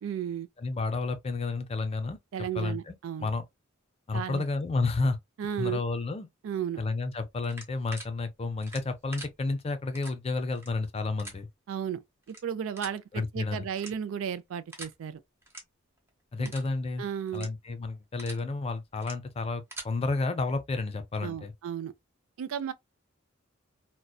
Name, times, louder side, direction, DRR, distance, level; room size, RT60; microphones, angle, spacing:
voice 1, 0.0-0.5 2.3-3.3 4.1-4.4 5.4-5.8 6.4-6.8 11.7-15.2 16.4-16.5 17.0-17.5 21.2-21.9 22.4-22.7, right 8 dB, 70° right, 0.3 m, -34 dB
voice 2, 0.6-2.2 2.5-2.9 3.2-3.4 4.1-5.2 5.6-6.3 6.8-11.5 13.1-13.7 16.3-17.0 17.3-21.5, left 3 dB, 30° left, 0.4 m, -31 dB
sound 1, 7.4-8.1 8.6-9.3 9.9-10.1 10.5-10.7 11.2-11.3 12.2-12.4 12.8-13.0 13.7-14.2 14.7-14.9 15.4-15.6 16.0-16.1 16.4-16.7 17.3-17.5 17.9-18.4 18.9-19.1 19.5-19.9, right 1 dB, 10° right, 0.8 m, -43 dB
2.7 x 2.1 x 2.2 m
head